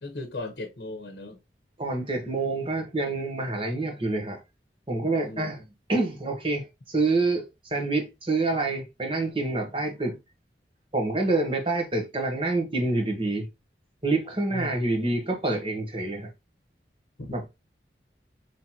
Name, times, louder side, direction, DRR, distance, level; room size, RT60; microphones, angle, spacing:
voice 1, 0.0-1.4 5.2-5.5 14.5-14.8 17.2-17.4, left 2 dB, 60° left, 1.0 m, -37 dB
voice 2, 1.8-4.4 4.9-5.6 5.9-10.2 10.9-13.5 14.0-16.3 17.3-17.5, right 2 dB, 30° right, 1.2 m, -27 dB
5.7 x 3.1 x 2.9 m
head